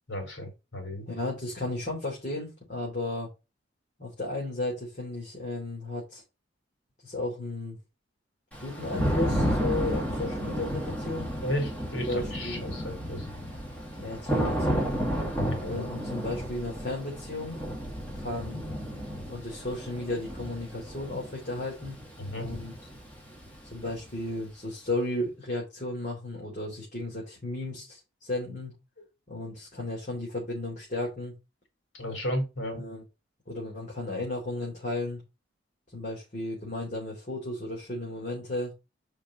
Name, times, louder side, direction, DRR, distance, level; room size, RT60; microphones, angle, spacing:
voice 1, 0.1-1.1 11.4-13.3 15.6-15.8 22.2-22.5 32.0-32.8, equal, 75° left, 3.8 m, -33 dB
voice 2, 1.1-3.3 4.0-6.2 7.0-7.8 8.6-11.3 12.1-12.7 14.0-14.8 15.6-17.6 18.2-18.6 19.3-22.0 22.3-22.7 23.7-28.7 29.3-31.3 32.7-33.0 33.5-35.2 35.9-38.7, left 2 dB, 45° left, 3.2 m, -34 dB
Thunder / Rain, 8.5-24.3, equal, 10° left, 2.3 m, -32 dB
5.2 x 5.2 x 5.3 m
head